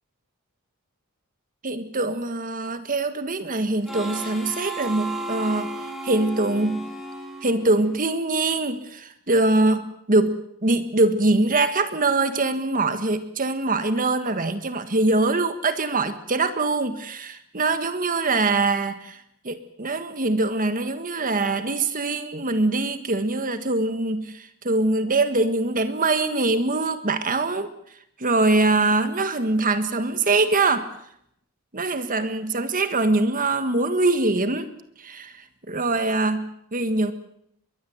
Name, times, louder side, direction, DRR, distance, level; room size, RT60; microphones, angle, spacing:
voice 1, 1.6-5.7 6.0-6.8 7.4-27.7 28.2-30.9 31.7-34.7 35.0-37.1, right 2 dB, 40° right, 10 dB, 1.6 m, -23 dB
Harmonica, 3.8-8.3, right 2 dB, ahead, 5.2 m, -34 dB
23.0 x 20.5 x 8.0 m, 0.73 s
head